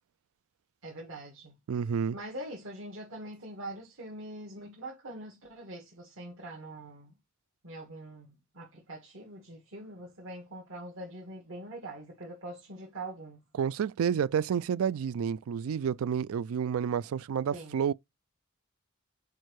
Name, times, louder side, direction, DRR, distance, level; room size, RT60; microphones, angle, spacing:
voice 1, 0.8-1.6 2.1-7.1 7.6-13.4 17.5-17.9, right 1 dB, 70° right, 1.7 m, -43 dB
voice 2, 1.7-2.2 13.6-17.9, right 7 dB, 90° right, 0.3 m, -30 dB
4.6 x 4.5 x 4.6 m
head